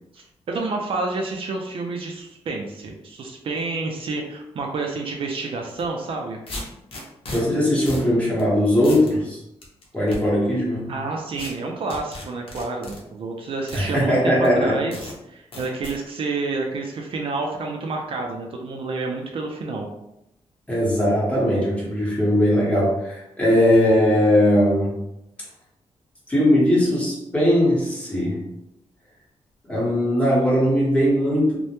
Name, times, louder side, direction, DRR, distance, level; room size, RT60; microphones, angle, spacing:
voice 1, 0.1-6.4 10.9-19.9, right 3 dB, 55° right, 1 dB, 0.4 m, -29 dB
sound 1, 5.7-5.8 6.5-7.4 7.9-8.1 8.4-8.5 8.8-9.1 9.6-10.2 11.4-11.5 11.9-13.0 13.7-13.9 14.4-14.5 14.9-15.1 15.5-16.0, left 2 dB, 55° left, 0.7 m, -35 dB
voice 2, 7.3-9.4 9.9-10.9 13.7-14.8 20.7-24.9 26.3-28.5 29.7-31.5, equal, 10° left, -6 dB, 0.9 m, -19 dB
2.1 x 2.1 x 2.9 m, 0.85 s
cardioid pair, 105°, 11 cm